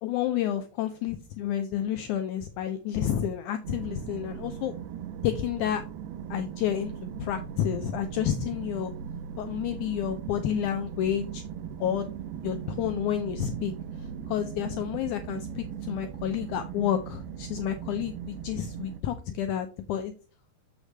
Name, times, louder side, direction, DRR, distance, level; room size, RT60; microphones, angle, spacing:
voice 1, 0.0-4.7 5.2-5.8 6.3-6.9 7.2-8.9 9.4-11.4 11.8-12.1 12.4-13.7 14.0-20.1, left 10 dB, 85° left, 8 dB, 1.8 m, -30 dB
sound 1, 3.6-19.0, right 8 dB, 80° right, 2.2 m, -39 dB
7.2 x 6.5 x 3.3 m, 0.36 s
omnidirectional pair, 4.1 m